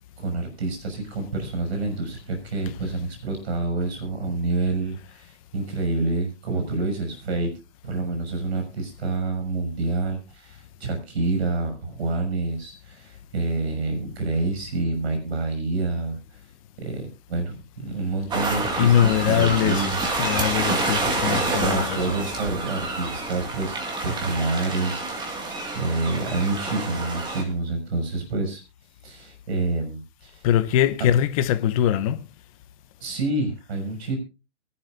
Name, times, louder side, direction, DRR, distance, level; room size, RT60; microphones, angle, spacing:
voice 1, 0.2-7.5 7.8-16.2 16.8-20.0 21.2-23.8 24.0-25.4 25.7-28.6 29.0-30.4 33.0-34.2, right 3 dB, 60° right, 6.4 m, -28 dB
sound 1, 18.3-27.4, right 2 dB, 10° right, 2.0 m, -28 dB
voice 2, 18.8-22.2 30.4-32.3, left 10 dB, 30° left, 0.9 m, -22 dB
23.0 x 11.5 x 2.5 m
hypercardioid pair, 140°, 36 cm